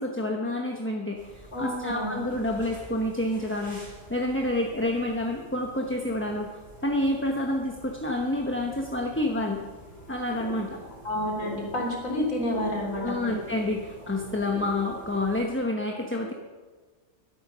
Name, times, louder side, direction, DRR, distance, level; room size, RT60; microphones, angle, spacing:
voice 1, 0.0-6.5 6.8-9.6 10.1-10.8 12.9-16.3, left 1 dB, 10° left, 1 dB, 0.9 m, -28 dB
sound 1, 1.2-15.4, right 1 dB, 30° right, 5.2 m, -46 dB
voice 2, 1.5-2.2 11.0-13.3, left 1 dB, 85° left, -1 dB, 3.7 m, -29 dB
12.0 x 11.0 x 6.2 m, 1.4 s
omnidirectional pair, 1.4 m